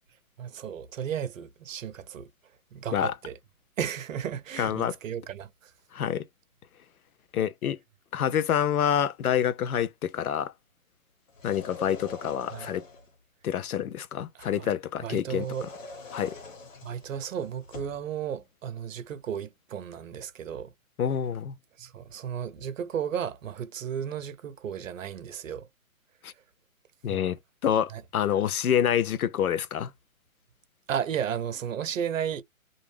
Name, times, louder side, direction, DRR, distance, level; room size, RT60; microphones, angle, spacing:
voice 1, 0.4-2.3 2.7-3.4 3.8-5.7 12.5-12.7 14.3-14.7 15.0-15.7 16.8-20.7 21.8-25.7 27.1-27.3 27.9-28.0 30.9-32.4, right 8 dB, 65° right, 0.7 m, -34 dB
voice 2, 4.6-4.9 5.9-6.2 7.3-7.8 8.1-10.5 11.4-12.9 13.4-15.5 16.1-16.4 21.0-21.6 26.2-26.3 27.0-29.9, left 9 dB, 90° left, 0.6 m, -27 dB
sound 1, 11.3-13.2 15.3-18.0, left 3 dB, 65° left, 1.3 m, -44 dB
2.4 x 2.0 x 3.2 m
hypercardioid pair, 155°, 42 cm